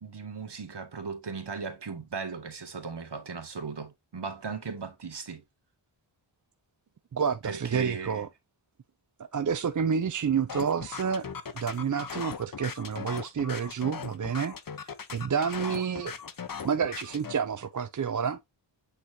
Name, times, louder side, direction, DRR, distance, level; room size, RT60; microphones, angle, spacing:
voice 1, 0.0-5.4 7.4-8.2, right 5 dB, 60° right, 2.0 m, -37 dB
voice 2, 7.1-8.3 9.2-11.3 11.5-14.5 14.8-16.1 16.6-18.4, right 7 dB, 45° right, 0.6 m, -29 dB
sound 1, 10.5-17.3, left 6 dB, 45° left, 0.9 m, -39 dB
8.2 x 4.3 x 2.7 m
wide cardioid pair, 90°, 45 cm